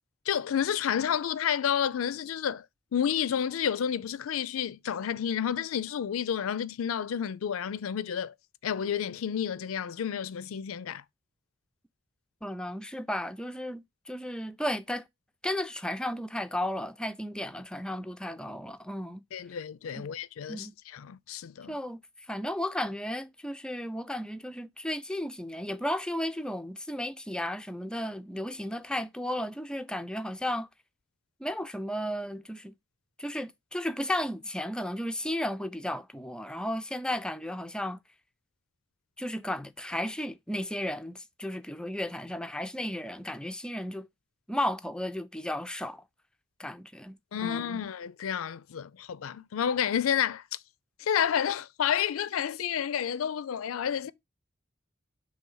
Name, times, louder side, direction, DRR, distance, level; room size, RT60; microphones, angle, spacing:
voice 1, 0.3-2.6 2.9-8.3 8.6-11.0 19.3-21.8 47.3-50.4 51.0-54.1, left 8 dB, 80° left, 0.4 m, -30 dB
voice 2, 12.4-15.0 15.4-19.2 20.0-20.1 20.5-20.7 21.7-22.0 22.3-30.7 31.4-32.7 33.2-38.0 39.2-44.1 44.5-46.0 46.6-47.8, left 1 dB, 5° left, 0.3 m, -34 dB
5.6 x 3.3 x 5.4 m
head